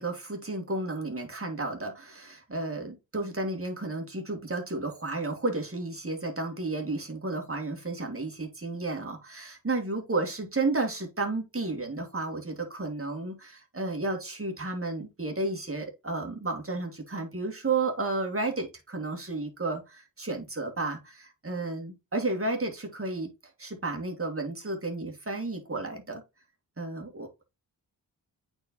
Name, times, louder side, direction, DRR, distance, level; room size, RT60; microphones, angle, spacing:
voice 1, 0.0-23.3 23.6-26.2 26.8-27.4, right 3 dB, 30° right, 2.6 m, -32 dB
8.7 x 4.5 x 3.0 m
cardioid pair, 45°, 46 cm